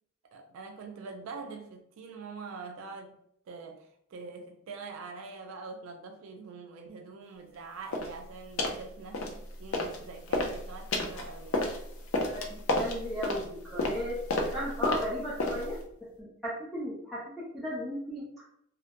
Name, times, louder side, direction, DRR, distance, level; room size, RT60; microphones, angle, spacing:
voice 1, 0.2-3.2 3.5-11.7, right 4 dB, 75° right, 0.3 m, -44 dB
sound 1, 7.9-8.2 8.6-8.8 9.1-10.0 10.3-15.8, left 2 dB, 85° left, 0.5 m, -31 dB
voice 2, 12.2-18.3, equal, ahead, 0.4 m, -36 dB
2.2 x 2.0 x 2.8 m
head